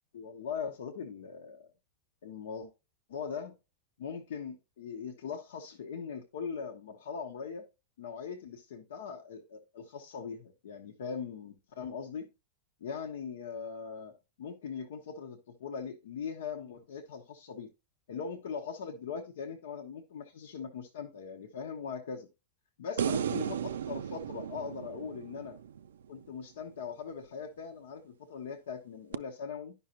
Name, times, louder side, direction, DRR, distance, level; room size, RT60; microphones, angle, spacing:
voice 1, 0.1-1.7 2.2-2.7 3.1-3.5 4.0-7.7 8.0-12.3 12.8-17.7 18.1-22.3 22.8-25.6 26.1-29.7, left 6 dB, 80° left, 1.0 m, -40 dB
sound 1, 23.0-26.3 29.1-29.2, right 8 dB, 85° right, 0.3 m, -35 dB
10.0 x 5.5 x 2.8 m
hypercardioid pair, 115°, 0 cm